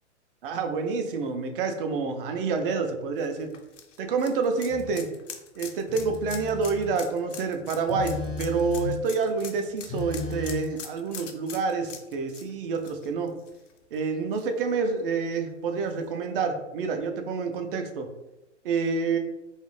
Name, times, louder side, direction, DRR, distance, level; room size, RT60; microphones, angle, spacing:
voice 1, 0.4-3.5 4.0-5.1 5.6-13.3 13.9-18.1 18.6-19.2, right 4 dB, 50° right, 6 dB, 0.4 m, -28 dB
sound 1, 3.2-13.9 14.3-14.4 15.9-16.0, left 7 dB, 85° left, 0.5 m, -43 dB
Telephone, 4.7-5.0 5.9-7.0 7.9-9.1 9.9-10.6, left 4 dB, 10° left, 0.5 m, -35 dB
2.4 x 2.0 x 3.0 m, 0.97 s
hypercardioid pair, 120°, 36 cm